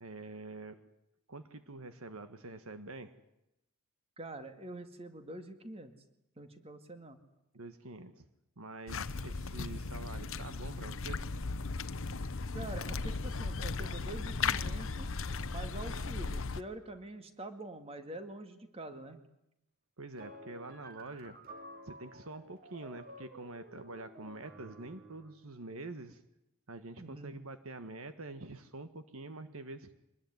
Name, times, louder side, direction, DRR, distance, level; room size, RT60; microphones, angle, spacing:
voice 1, 0.0-0.7 1.3-3.1 7.5-8.2 8.6-11.2 20.0-21.3 21.8-26.2 26.7-29.9, right 2 dB, 70° right, 10 dB, 1.6 m, -46 dB
voice 2, 4.2-5.9 6.4-7.2 12.5-15.1 15.5-19.2 27.0-27.4, right 1 dB, 25° right, 8 dB, 2.1 m, -45 dB
sound 1, 8.9-16.6, left 4 dB, 60° left, 0.9 m, -36 dB
sound 2, 20.2-25.4, right 1 dB, 40° right, 2.8 m, -52 dB
24.5 x 20.5 x 9.5 m, 0.84 s
head